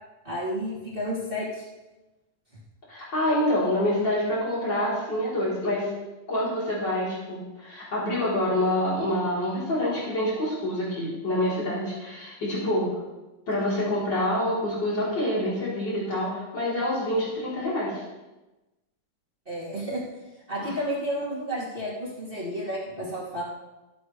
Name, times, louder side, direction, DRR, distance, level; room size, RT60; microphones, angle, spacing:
voice 1, 0.2-1.7 19.5-20.0 20.5-23.4, equal, 30° right, -7 dB, 2.8 m, -31 dB
voice 2, 2.9-5.9 6.3-12.9 13.5-18.0 20.6-20.8, left 1 dB, 80° left, -8 dB, 4.4 m, -27 dB
20.5 x 8.2 x 3.3 m, 1.1 s
omnidirectional pair, 1.9 m